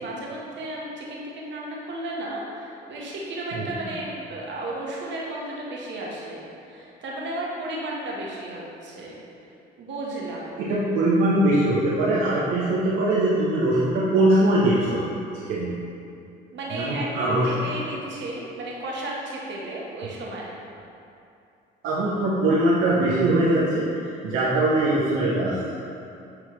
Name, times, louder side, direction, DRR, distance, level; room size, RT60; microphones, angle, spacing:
voice 1, 0.0-9.2 9.8-10.5 16.5-20.5, right 1 dB, 60° right, -4 dB, 1.4 m, -34 dB
voice 2, 10.7-15.0 15.3-15.7 16.7-17.5 21.8-23.9 24.2-25.5, right 1 dB, 75° right, -8 dB, 0.9 m, -21 dB
9.6 x 3.2 x 3.2 m, 2.6 s
supercardioid pair, 65°, 21 cm